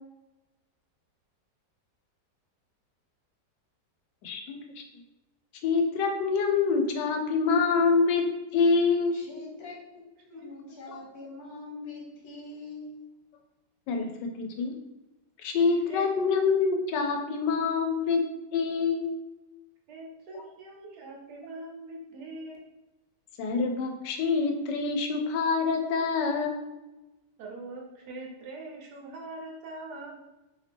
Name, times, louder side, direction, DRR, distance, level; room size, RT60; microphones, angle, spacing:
voice 1, 4.2-4.8 5.6-8.2 8.5-9.2 10.9-11.0 13.9-14.1 14.4-14.7 15.4-18.2 18.5-19.1 23.4-26.6, left 4 dB, 80° left, 4 dB, 1.2 m, -26 dB
voice 2, 9.1-9.8 10.3-13.0, left 3 dB, 65° left, -1 dB, 1.3 m, -43 dB
voice 3, 15.9-16.3 19.9-22.6 27.4-30.2, right 2 dB, 70° right, -1 dB, 1.3 m, -42 dB
3.1 x 2.8 x 3.3 m, 1.0 s
omnidirectional pair, 1.9 m